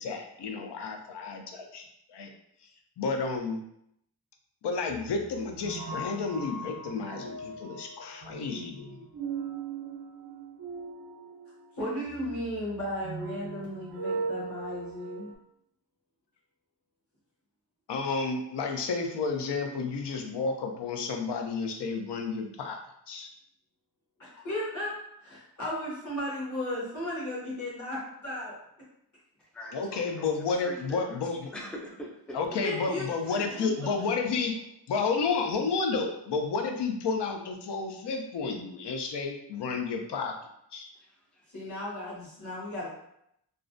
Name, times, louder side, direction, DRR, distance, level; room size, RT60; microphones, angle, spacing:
voice 1, 0.0-2.3 3.0-3.6 4.6-9.0 17.9-22.8 23.1-23.3 29.7-31.5 32.3-34.6 34.9-40.3 40.7-40.9, left 4 dB, 80° left, 3 dB, 0.5 m, -31 dB
sound 1, 4.9-15.3, right 4 dB, 60° right, 0.5 m, -39 dB
voice 2, 11.8-15.3 24.2-24.9 25.2-28.6 32.6-33.7 41.5-42.9, left 1 dB, 45° left, -7 dB, 1.0 m, -35 dB
voice 3, 29.5-31.2 31.5-32.6 41.0-41.5, equal, 5° left, -1 dB, 0.4 m, -44 dB
2.4 x 2.1 x 2.5 m, 0.76 s
wide cardioid pair, 90°, 41 cm